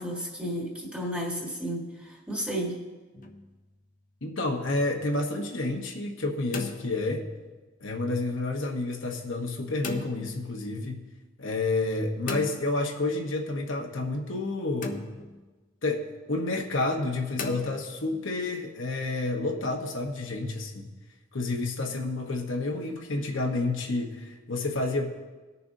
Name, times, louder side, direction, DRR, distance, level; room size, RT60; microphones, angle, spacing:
voice 1, 0.0-2.8, equal, 5° right, -2 dB, 1.6 m, -33 dB
sound 1, 3.1-3.7 6.2-7.5 9.8-10.4 12.3-13.2 14.8-15.5 17.4-18.3, left 3 dB, 40° left, 0.7 m, -37 dB
voice 2, 4.2-7.3 7.8-11.0 11.4-14.9 15.8-16.0 16.3-20.9 21.3-25.1, left 2 dB, 75° left, 1 dB, 1.1 m, -29 dB
19.0 x 6.8 x 2.7 m, 1.3 s
head